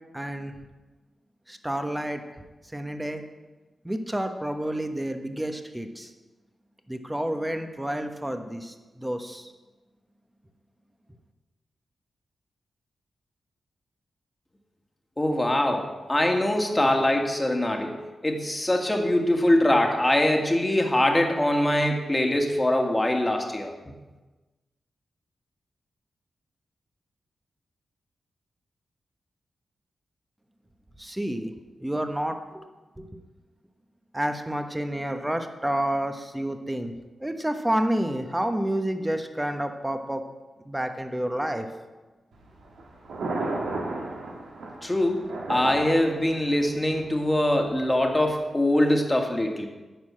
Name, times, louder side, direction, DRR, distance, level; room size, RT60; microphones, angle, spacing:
voice 1, 0.1-0.6 1.5-2.2 2.7-3.2 3.8-6.1 6.9-9.5 31.0-31.5 31.8-32.6 33.0-33.2 34.1-36.9 37.2-40.2 40.6-41.7, right 1 dB, 10° right, 6 dB, 1.2 m, -29 dB
voice 2, 15.2-23.7 44.8-45.2 45.5-49.7, left 1 dB, 20° left, 3 dB, 1.8 m, -23 dB
Thunder, 42.3-48.3, right 2 dB, 85° right, 1.7 m, -35 dB
10.0 x 4.7 x 7.6 m, 1.2 s
cardioid pair, 45°, 0 cm